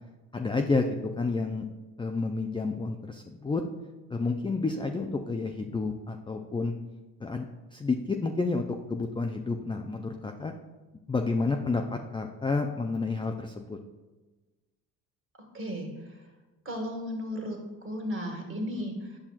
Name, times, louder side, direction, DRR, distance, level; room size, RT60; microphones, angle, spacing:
voice 1, 0.3-1.6 2.0-3.6 4.1-6.7 7.2-7.5 7.7-10.5 11.1-13.8, left 3 dB, 10° left, 4 dB, 0.4 m, -30 dB
voice 2, 15.5-15.9 16.7-19.2, equal, 30° right, 2 dB, 1.8 m, -34 dB
8.9 x 5.6 x 2.4 m, 1.2 s
hypercardioid pair, 55°, 42 cm